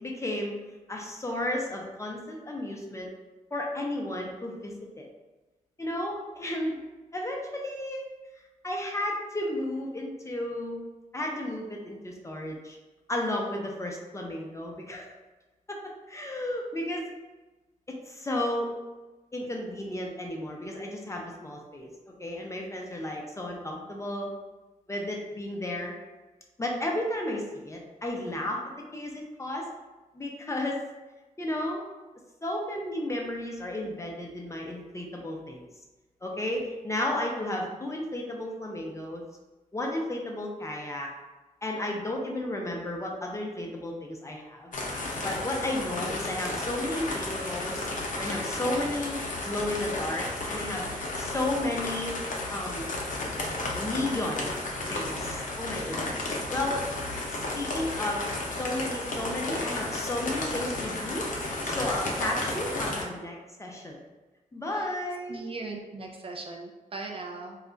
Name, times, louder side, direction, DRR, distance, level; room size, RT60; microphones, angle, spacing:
voice 1, 0.0-0.5 0.9-3.1 3.5-5.1 5.8-6.8 7.1-8.0 8.6-10.8 11.1-12.8 13.1-15.1 15.7-15.8 16.1-17.1 17.9-18.8 19.3-24.3 24.9-25.9 26.6-28.6 28.9-29.7 30.1-30.8 31.4-31.9 32.4-35.7 36.2-39.2 39.7-41.1 41.6-44.7 45.2-47.9 48.2-49.2 49.4-50.9 51.1-52.2 52.5-53.0 53.7-54.5 54.9-56.8 57.3-58.3 58.6-64.0 64.5-65.4, left 1 dB, 20° left, -1 dB, 0.5 m, -33 dB
sound 1, 44.7-63.0, left 2 dB, 70° left, 0.6 m, -33 dB
voice 2, 65.3-67.6, right 3 dB, 40° right, 1 dB, 0.4 m, -39 dB
2.3 x 2.1 x 3.8 m, 1.2 s
wide cardioid pair, 90°, 14 cm